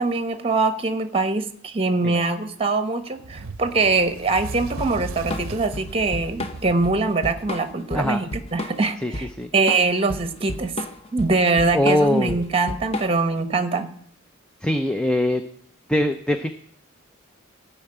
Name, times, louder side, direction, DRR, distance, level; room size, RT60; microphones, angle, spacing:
voice 1, 0.0-10.7 11.1-13.9, right 3 dB, 25° right, 10 dB, 1.1 m, -23 dB
Fire, 3.2-7.8, right 3 dB, 75° right, 0.6 m, -37 dB
Drum kit / Drum, 4.8-13.4, left 1 dB, 30° left, 1.2 m, -32 dB
voice 2, 11.7-12.4 14.6-15.4 15.9-16.5, left 1 dB, 5° left, 7 dB, 0.6 m, -21 dB
15.5 x 5.7 x 8.7 m, 0.63 s
head